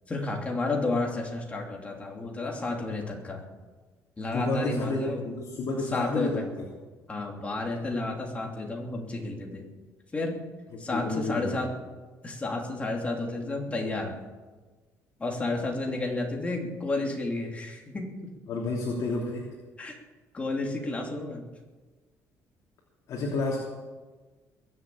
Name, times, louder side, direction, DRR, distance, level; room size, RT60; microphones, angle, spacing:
voice 1, 0.1-3.4 4.2-5.2 5.9-6.5 7.1-9.7 10.1-10.4 10.8-11.7 12.2-14.2 15.2-18.3 19.8-20.0 20.3-21.5, left 2 dB, 20° left, 0 dB, 3.1 m, -31 dB
voice 2, 4.3-6.7 10.7-11.6 15.8-15.9 18.5-19.4 23.1-23.6, left 2 dB, 55° left, -2 dB, 3.1 m, -30 dB
21.5 x 7.4 x 8.7 m, 1.3 s
cardioid pair, 130°, 7 cm